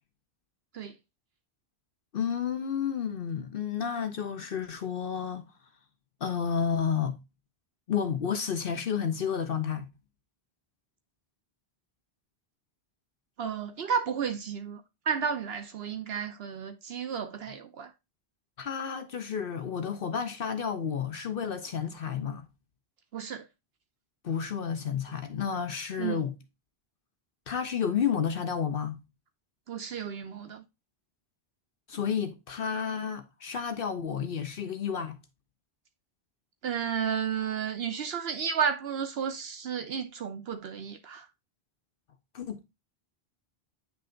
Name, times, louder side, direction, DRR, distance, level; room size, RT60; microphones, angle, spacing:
voice 1, 2.1-5.4 6.2-7.2 7.9-9.9 18.6-22.5 24.2-26.3 27.5-29.0 31.9-35.2 42.3-42.6, left 7 dB, 65° left, 0.9 m, -31 dB
voice 2, 13.4-14.8 15.1-17.9 23.1-23.4 26.0-26.2 29.7-30.6 36.6-41.3, right 7 dB, 75° right, 1.0 m, -32 dB
9.4 x 3.3 x 3.7 m
omnidirectional pair, 1.0 m